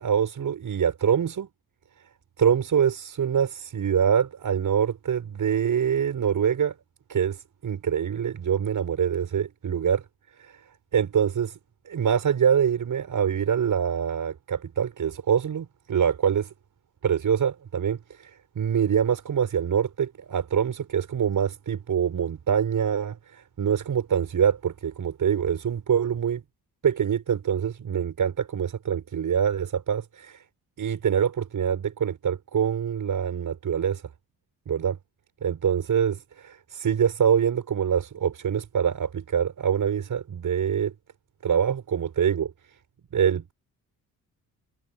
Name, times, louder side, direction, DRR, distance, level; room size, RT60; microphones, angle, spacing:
voice 1, 0.0-1.5 2.4-6.7 7.1-10.0 10.4-10.6 10.9-11.6 11.8-16.5 17.0-26.4 26.8-30.4 30.8-34.0 34.7-35.0 35.4-40.9 41.4-42.5 43.1-43.5, right 8 dB, 60° right, 6.8 m, -25 dB
cardioid pair, 80°, 36 cm